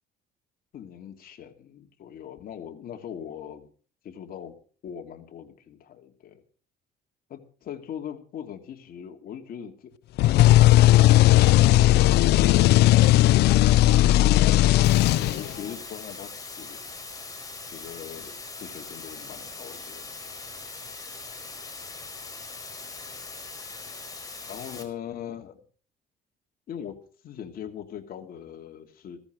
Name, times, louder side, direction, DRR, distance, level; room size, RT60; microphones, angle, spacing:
voice 1, 0.7-3.7 4.0-4.5 4.8-6.4 7.3-9.9 12.0-14.0 15.0-16.3 16.6-16.8 17.7-20.0 24.5-25.6 26.7-27.0 27.2-29.2, left 9 dB, 60° left, 5 dB, 2.8 m, -40 dB
sound 1, 10.2-15.7, left 15 dB, 75° left, 0.6 m, -17 dB
sound 2, 14.8-24.8, left 3 dB, 20° left, 4.6 m, -40 dB
16.5 x 14.0 x 4.9 m, 0.42 s
cardioid pair, 110°, 17 cm